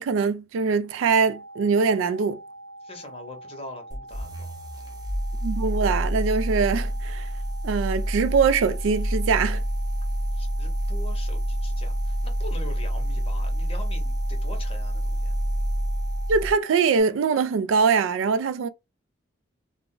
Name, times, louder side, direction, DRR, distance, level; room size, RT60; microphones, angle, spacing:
voice 1, 0.0-2.4 5.4-7.3 7.6-9.6 16.3-18.7, right 5 dB, 85° right, 0.3 m, -23 dB
sound 1, 1.1-17.0, right 1 dB, 50° right, 0.8 m, -44 dB
voice 2, 2.8-4.5 10.3-15.4, left 2 dB, 30° left, 0.7 m, -42 dB
sound 2, 3.9-16.6, equal, 20° right, 0.5 m, -27 dB
2.4 x 2.0 x 3.6 m
head